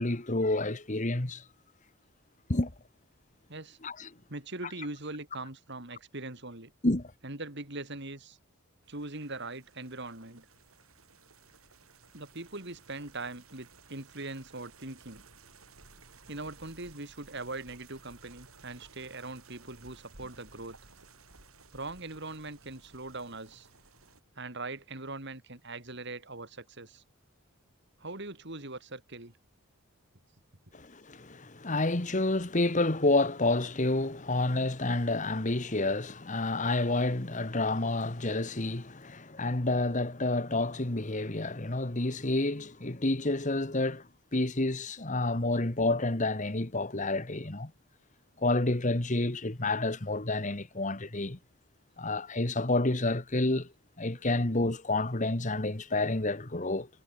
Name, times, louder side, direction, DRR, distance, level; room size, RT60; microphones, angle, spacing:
voice 1, 0.0-1.4 2.5-2.7 3.8-4.1 6.8-7.1 30.7-44.0 44.3-47.7 48.4-51.4 52.0-53.7 54.0-56.9, left 2 dB, 35° left, 1.5 m, -29 dB
voice 2, 4.3-6.7 7.2-8.4 8.9-10.5 12.1-15.2 16.3-20.8 21.7-23.7 24.4-27.0 28.0-29.4 54.4-54.5, right 2 dB, 55° right, 3.6 m, -41 dB
sound 1, 8.8-24.2, right 4 dB, 80° right, 7.2 m, -57 dB
head